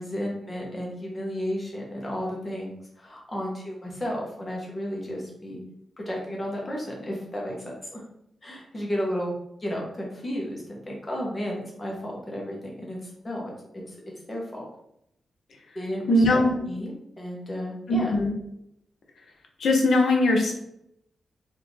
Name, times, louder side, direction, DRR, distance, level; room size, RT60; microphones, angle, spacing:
voice 1, 0.0-2.7 3.0-5.6 6.0-7.6 7.9-8.0 8.4-9.3 9.6-14.0 14.3-14.6 15.7-18.1, equal, 20° left, -2 dB, 1.1 m, -33 dB
voice 2, 16.1-16.6 17.9-18.3 19.6-20.5, left 1 dB, 70° left, 2 dB, 0.8 m, -20 dB
4.1 x 2.7 x 3.2 m, 0.76 s
wide cardioid pair, 155°, 0 cm